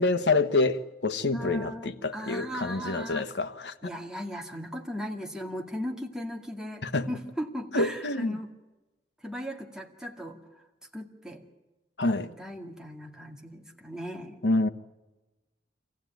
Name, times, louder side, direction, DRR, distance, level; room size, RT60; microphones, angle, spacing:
voice 1, 0.0-3.7 6.8-7.1 7.7-8.4 12.0-12.3 14.4-14.7, left 2 dB, 75° left, 1.2 m, -27 dB
voice 2, 1.3-3.3 3.8-8.5 9.2-10.6 10.9-11.5 12.0-14.5, equal, 5° right, 2.2 m, -38 dB
26.0 x 15.5 x 9.3 m
head